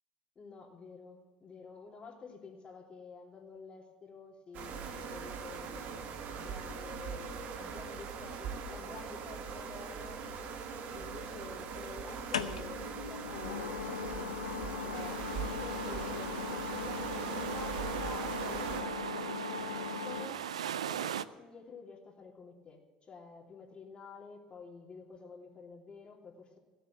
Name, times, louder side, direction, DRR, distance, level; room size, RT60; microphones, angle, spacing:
voice 1, 0.3-10.2 10.9-16.5 16.8-20.4 20.8-26.6, left 4 dB, 30° left, 0 dB, 3.0 m, -50 dB
sound 1, 4.5-18.8, right 5 dB, 55° right, 1.7 m, -41 dB
sound 2, 9.9-10.7 12.1-20.3, left 7 dB, 85° left, 0.7 m, -40 dB
sound 3, 14.9-21.2, right 9 dB, 85° right, 0.4 m, -39 dB
16.0 x 6.9 x 8.5 m, 1.4 s
hypercardioid pair, 70°, 3 cm